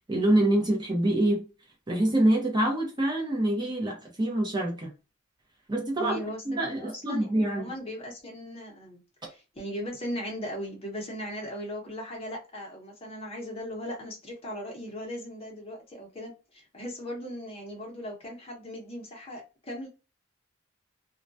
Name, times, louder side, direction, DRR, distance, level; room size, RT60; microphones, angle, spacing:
voice 1, 0.1-1.5 1.9-4.9 5.7-6.2 6.5-7.7, right 1 dB, 20° right, 0.6 m, -25 dB
voice 2, 5.9-9.0 9.3-19.9, equal, 30° left, 0.8 m, -38 dB
2.2 x 2.1 x 2.6 m
head